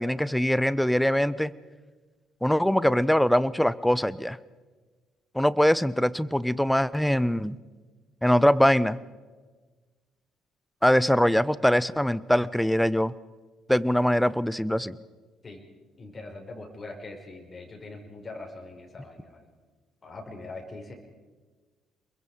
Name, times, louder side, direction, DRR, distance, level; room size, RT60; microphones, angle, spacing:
voice 1, 0.0-1.5 2.4-4.4 5.3-7.6 8.2-9.0 10.8-13.1 13.7-15.0, equal, 5° left, 19 dB, 0.9 m, -22 dB
voice 2, 16.0-19.5 20.0-20.9, left 2 dB, 35° left, 2 dB, 4.9 m, -42 dB
28.5 x 22.0 x 5.0 m, 1.3 s
figure-of-eight pair, 50°, 0 cm